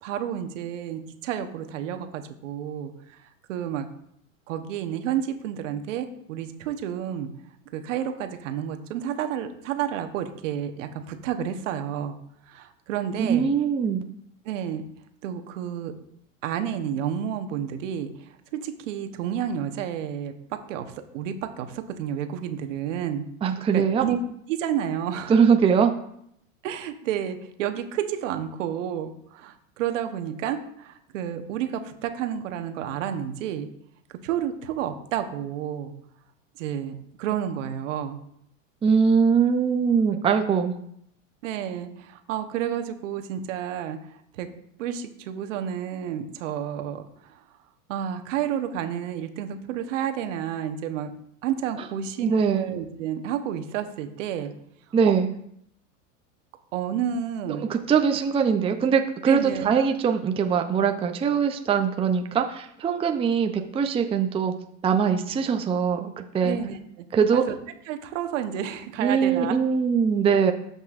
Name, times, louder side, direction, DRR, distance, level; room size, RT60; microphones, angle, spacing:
voice 1, 0.0-2.9 3.2-3.9 4.5-7.3 7.7-12.2 12.5-13.5 14.4-14.8 15.2-15.9 16.4-20.3 20.7-20.8 21.1-23.2 23.7-24.2 24.5-25.3 26.6-33.7 34.2-35.9 36.6-38.2 41.4-44.5 44.8-47.4 47.9-51.1 51.4-54.5 55.0-55.1 56.7-57.6 59.3-59.7 66.4-67.0 67.3-67.5 67.9-69.6, right 9 dB, 70° right, 7 dB, 1.1 m, -30 dB
voice 2, 13.2-14.0 23.4-24.1 25.3-25.9 38.8-40.7 52.2-52.7 54.9-55.3 57.5-64.5 64.8-66.6 67.1-67.4 69.0-70.5, right 6 dB, 15° right, 5 dB, 0.5 m, -22 dB
13.5 x 5.4 x 2.5 m, 0.72 s
hypercardioid pair, 110°, 39 cm